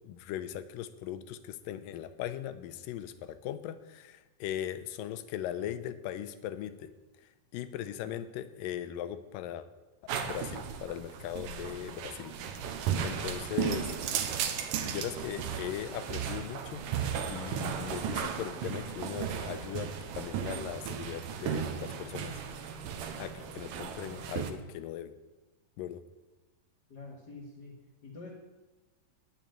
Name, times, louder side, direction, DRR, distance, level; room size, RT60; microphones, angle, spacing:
voice 1, 0.0-6.9 7.5-9.7 10.2-12.3 13.0-13.9 14.8-16.8 17.2-22.4 23.2-25.1 25.8-26.0, left 11 dB, 85° left, 12 dB, 2.3 m, -39 dB
sound 1, 10.1-24.5, right 8 dB, 80° right, 2.5 m, -35 dB
voice 2, 26.9-27.7 28.0-28.3, left 3 dB, 40° left, -4 dB, 1.7 m, -46 dB
10.0 x 7.2 x 9.1 m, 1.2 s
omnidirectional pair, 3.9 m